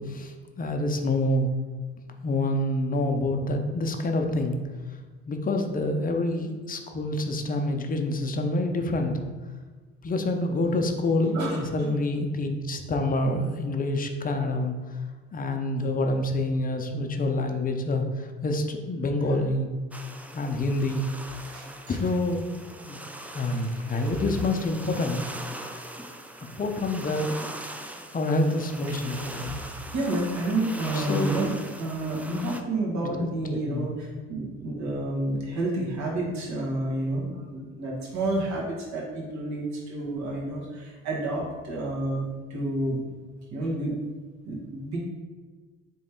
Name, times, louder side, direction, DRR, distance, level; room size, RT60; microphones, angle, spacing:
voice 1, 0.0-1.5 2.2-4.6 5.3-9.2 10.0-15.0 15.3-19.7 20.3-21.1 21.9-22.4 22.9-23.0 23.3-25.2 26.6-27.3 28.1-29.5 30.9-31.4 33.0-33.1 33.5-33.9, left 2 dB, 30° left, 4 dB, 0.6 m, -27 dB
voice 2, 11.3-11.9 13.2-13.3 21.4-22.0 23.5-24.1 29.0-29.1 29.4-31.5 31.8-43.0 43.5-43.9 44.4-45.0, right 2 dB, 65° right, -3 dB, 1.4 m, -30 dB
sound 1, 19.9-32.6, right 1 dB, 5° right, 0.3 m, -40 dB
3.5 x 3.1 x 4.4 m, 1.4 s
hypercardioid pair, 65°, 30 cm